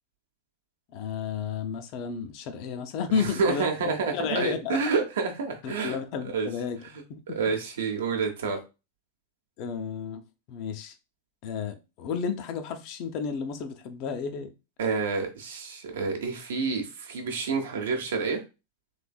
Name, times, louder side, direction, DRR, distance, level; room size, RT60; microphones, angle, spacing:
voice 1, 0.9-5.0 5.6-6.8 7.1-7.4 9.6-10.9 11.4-14.5, left 6 dB, 45° left, 0.6 m, -32 dB
voice 2, 3.1-6.0 6.3-6.5 7.3-8.6 14.8-18.4, right 4 dB, 60° right, 0.8 m, -28 dB
3.2 x 3.2 x 2.3 m
figure-of-eight pair, 90°, 0 cm